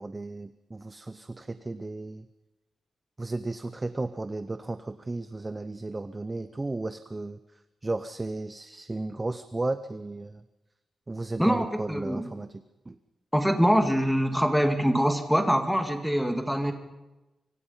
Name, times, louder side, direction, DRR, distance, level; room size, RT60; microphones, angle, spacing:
voice 1, 0.0-2.3 3.2-7.4 7.8-10.4 11.1-13.0, right 2 dB, 15° right, 12 dB, 0.7 m, -34 dB
voice 2, 11.4-12.3 13.3-16.7, equal, ahead, 6 dB, 2.1 m, -24 dB
25.0 x 25.0 x 5.6 m, 1.0 s
wide cardioid pair, 170°, 0 cm